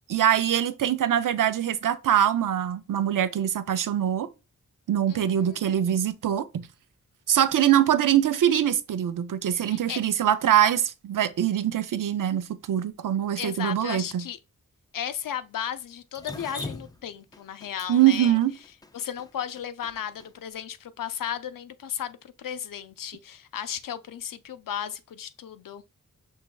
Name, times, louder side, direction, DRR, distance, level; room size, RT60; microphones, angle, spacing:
voice 1, 0.1-4.3 4.9-6.7 7.3-14.3 17.9-18.5, right 10 dB, 75° right, 0.5 m, -23 dB
voice 2, 5.1-5.8 9.5-10.0 13.4-14.4 14.9-18.4 18.9-25.8, left 9 dB, 80° left, 0.5 m, -35 dB
Drip, 16.1-20.3, left 2 dB, 10° left, 0.3 m, -40 dB
6.2 x 3.3 x 2.2 m
wide cardioid pair, 135°, 32 cm